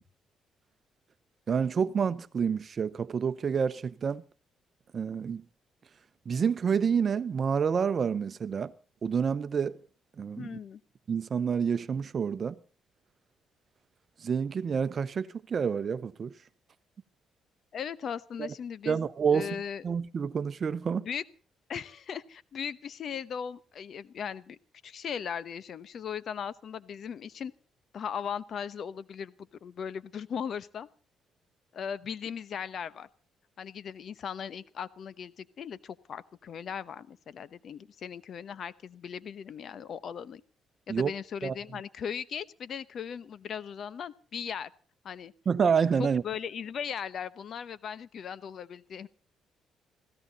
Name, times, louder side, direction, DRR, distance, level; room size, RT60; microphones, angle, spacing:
voice 1, 1.5-4.2 4.9-5.4 6.3-8.7 9.0-9.8 10.2-10.6 11.1-12.6 14.2-16.3 18.9-19.5 19.8-21.1 40.9-41.1 41.4-41.5 45.5-46.2, right 6 dB, 45° right, 0.9 m, -28 dB
voice 2, 10.4-10.8 17.7-19.0 19.3-19.8 21.0-21.2 21.7-24.6 24.8-27.5 27.9-29.3 29.6-30.9 31.7-33.1 33.6-40.4 40.9-44.7 45.0-45.3 46.0-49.1, left 7 dB, 60° left, 0.9 m, -38 dB
21.0 x 15.5 x 4.1 m
cardioid pair, 90°, 0 cm